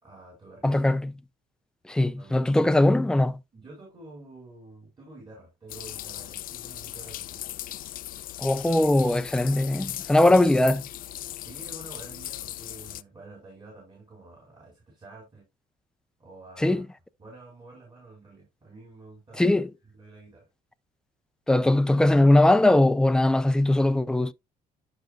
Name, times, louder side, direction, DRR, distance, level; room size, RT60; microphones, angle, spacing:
voice 1, 0.0-0.8 2.2-2.8 3.5-7.5 10.2-10.4 11.4-15.4 16.2-16.8 17.2-19.6 19.9-20.5, right 2 dB, 25° right, 5.0 m, -48 dB
voice 2, 0.6-1.1 1.9-3.4 8.4-10.8 16.6-16.8 19.4-19.7 21.5-24.3, left 1 dB, 5° left, 0.5 m, -20 dB
sound 1, 5.7-13.0, left 13 dB, 55° left, 0.5 m, -38 dB
11.5 x 5.0 x 2.5 m
cardioid pair, 110°, 17 cm